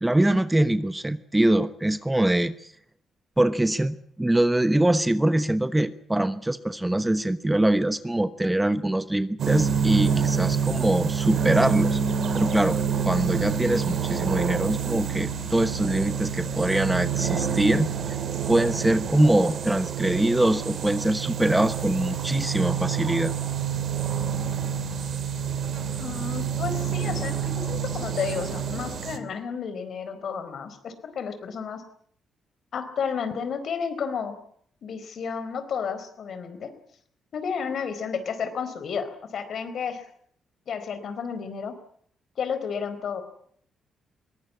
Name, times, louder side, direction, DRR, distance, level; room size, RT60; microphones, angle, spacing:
voice 1, 0.0-2.7 3.4-12.0 12.3-12.8 13.1-17.9 18.5-23.3, right 1 dB, 10° right, 12 dB, 1.1 m, -23 dB
sound 1, 9.4-29.2, right 7 dB, 60° right, 2.7 m, -27 dB
voice 2, 26.0-31.8 32.7-34.4 34.8-36.7 37.3-40.1 40.7-41.8 42.4-43.2, left 6 dB, 60° left, 10 dB, 4.3 m, -32 dB
22.0 x 19.0 x 8.5 m, 0.63 s
cardioid pair, 95°, 0 cm